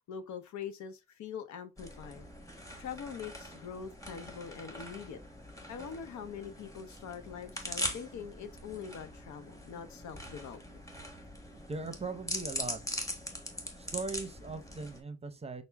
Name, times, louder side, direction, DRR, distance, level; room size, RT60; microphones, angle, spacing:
voice 1, 0.1-2.3 2.8-5.2 5.7-10.8, left 7 dB, 70° left, 0.8 m, -43 dB
sound 1, 1.8-15.0, left 1 dB, 10° left, 1.2 m, -42 dB
voice 2, 11.5-12.8 13.8-15.6, right 3 dB, 20° right, 0.7 m, -39 dB
5.8 x 2.1 x 3.4 m
cardioid pair, 90°, 30 cm